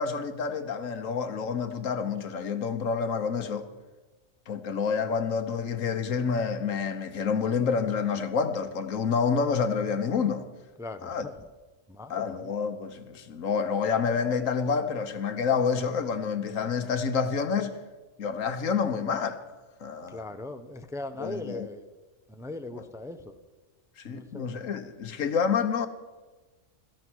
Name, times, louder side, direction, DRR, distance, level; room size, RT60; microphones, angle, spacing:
voice 1, 0.0-3.7 4.5-10.5 11.0-11.2 12.1-17.8 18.2-19.4 19.8-20.2 21.2-21.7 24.0-25.9, left 6 dB, 80° left, 1.5 m, -28 dB
voice 2, 10.8-11.5 11.9-12.5 20.1-21.8 22.3-23.4 24.0-24.5, left 2 dB, 5° right, 0.7 m, -39 dB
17.0 x 13.0 x 6.2 m
omnidirectional pair, 1.3 m